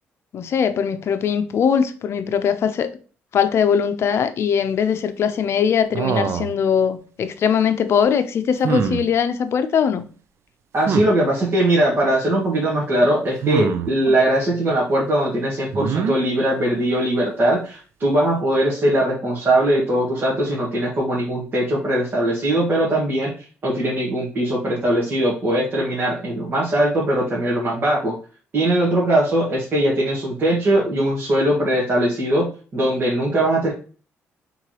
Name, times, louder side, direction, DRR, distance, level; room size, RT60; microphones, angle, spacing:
voice 1, 0.3-2.9 3.3-10.0 14.0-14.1, left 7 dB, 60° left, 0.6 m, -21 dB
sound 1, 5.9-6.6 8.6-9.1 10.8-11.1 13.4-13.9 15.7-16.2, right 6 dB, 65° right, 0.5 m, -23 dB
voice 2, 10.7-23.3 23.6-28.2 28.5-33.7, right 1 dB, 45° right, 1.8 m, -20 dB
4.6 x 3.8 x 3.0 m
cardioid pair, 100°, 5 cm